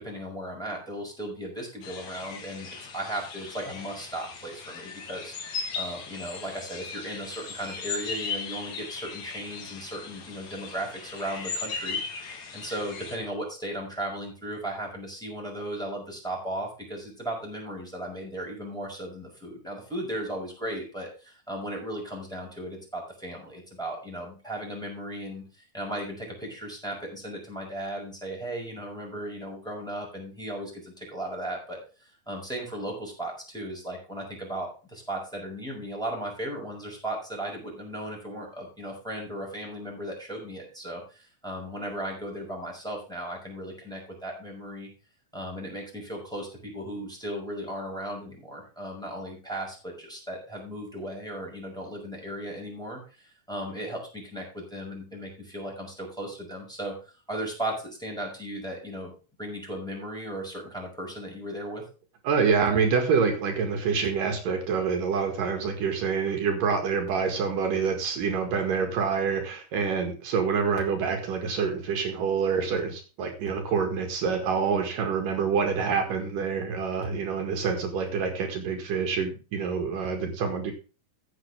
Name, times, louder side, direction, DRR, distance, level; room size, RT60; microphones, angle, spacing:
voice 1, 0.0-5.4 5.8-44.9 45.3-59.1 59.4-61.8, right 1 dB, ahead, -2 dB, 5.4 m, -36 dB
sound 1, 1.8-13.2, left 5 dB, 55° left, 3.5 m, -37 dB
voice 2, 62.2-80.7, right 5 dB, 70° right, 4 dB, 3.4 m, -26 dB
15.0 x 8.0 x 3.4 m, 0.34 s
omnidirectional pair, 4.0 m